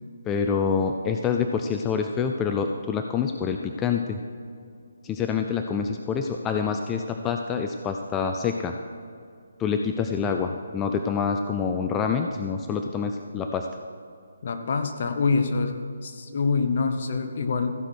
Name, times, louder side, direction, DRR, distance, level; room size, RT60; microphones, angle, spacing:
voice 1, 0.3-4.2 5.0-8.8 9.6-13.7, left 6 dB, 15° left, 5 dB, 0.4 m, -26 dB
voice 2, 14.4-17.7, left 4 dB, 50° left, 7 dB, 1.1 m, -25 dB
15.0 x 5.9 x 6.4 m, 2.3 s
hypercardioid pair, 155°, 0 cm